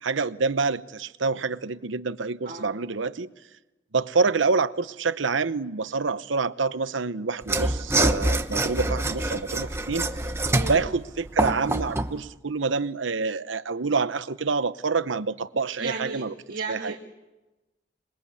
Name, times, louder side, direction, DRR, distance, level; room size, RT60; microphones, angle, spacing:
voice 1, 0.0-3.3 3.9-10.1 10.7-16.3 16.7-16.9, right 4 dB, 85° right, 0.9 m, -27 dB
Mechanisms / Sawing, 7.4-12.2, right 2 dB, 15° right, 1.0 m, -26 dB
voice 2, 10.5-10.8 15.8-17.0, right 3 dB, 45° right, 2.3 m, -34 dB
27.0 x 21.0 x 8.4 m
head